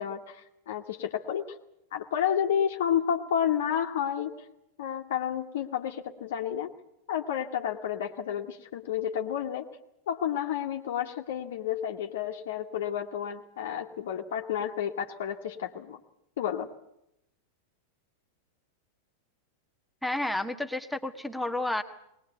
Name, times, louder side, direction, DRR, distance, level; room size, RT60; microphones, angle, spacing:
voice 1, 0.0-1.5 1.9-4.3 4.8-6.7 7.1-9.7 10.1-16.0 16.4-16.7, left 9 dB, 55° left, 4 dB, 1.4 m, -31 dB
voice 2, 20.0-21.8, left 1 dB, ahead, 4 dB, 1.5 m, -31 dB
21.0 x 20.0 x 8.2 m, 0.81 s
figure-of-eight pair, 90°, 0 cm